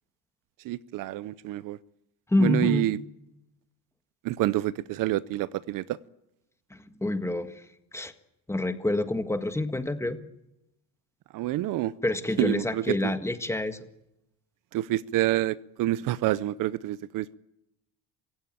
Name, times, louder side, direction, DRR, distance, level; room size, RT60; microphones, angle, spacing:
voice 1, 0.6-1.8 2.4-3.0 4.2-6.0 11.3-11.9 12.4-13.1 14.7-17.3, right 15 dB, 65° right, 0.8 m, -27 dB
voice 2, 2.3-2.9 6.7-7.6 7.9-8.1 8.5-10.2 12.0-13.8, left 2 dB, 5° left, 1.7 m, -27 dB
25.0 x 16.0 x 9.2 m
cardioid pair, 115°, 35 cm